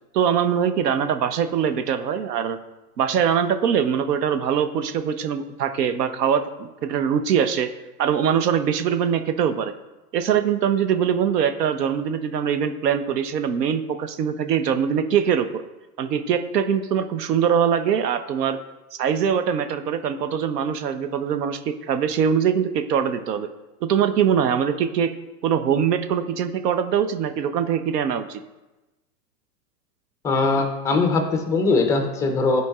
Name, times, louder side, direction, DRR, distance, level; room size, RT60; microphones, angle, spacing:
voice 1, 0.1-2.6 3.0-7.7 8.0-9.7 10.1-15.6 16.0-18.6 19.0-23.5 23.8-25.1 25.4-28.4, right 8 dB, 80° right, 9 dB, 0.8 m, -22 dB
voice 2, 30.2-32.6, left 3 dB, 5° left, 4 dB, 0.4 m, -21 dB
11.0 x 4.6 x 2.3 m, 1.1 s
hypercardioid pair, 120°, 47 cm